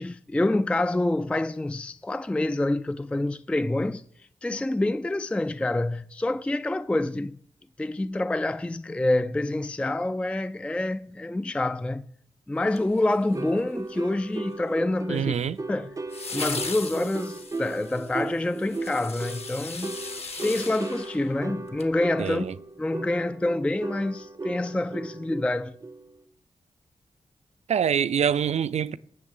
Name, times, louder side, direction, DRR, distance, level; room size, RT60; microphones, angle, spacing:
voice 1, 0.0-4.0 4.4-7.4 7.8-12.0 12.5-15.3 15.7-16.0 16.3-20.0 20.4-22.5 22.8-25.8, left 2 dB, 10° left, 0.3 m, -27 dB
sound 1, 12.7-13.6 16.1-21.9 22.3-22.4, left 4 dB, 60° left, 1.2 m, -38 dB
sound 2, 13.3-26.2, right 3 dB, 30° right, 0.6 m, -37 dB
voice 2, 15.1-15.6 22.2-22.5 27.7-29.0, right 8 dB, 65° right, 0.4 m, -25 dB
18.5 x 6.3 x 3.8 m
cardioid pair, 55°, 12 cm